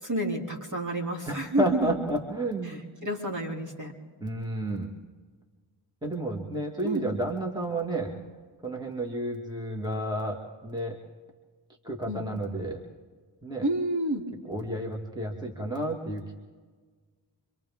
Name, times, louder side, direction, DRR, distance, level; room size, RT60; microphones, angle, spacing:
voice 1, 0.0-1.9 3.0-3.9 6.8-7.1 12.1-12.3 13.6-14.2, right 1 dB, 40° right, -1 dB, 3.1 m, -29 dB
voice 2, 1.3-2.8 4.2-4.9 6.0-8.1 8.6-11.0 11.8-12.8 13.4-13.7 14.4-16.3, right 1 dB, 10° right, 1 dB, 2.0 m, -31 dB
29.0 x 24.5 x 3.7 m, 1.5 s
wide cardioid pair, 80°, 48 cm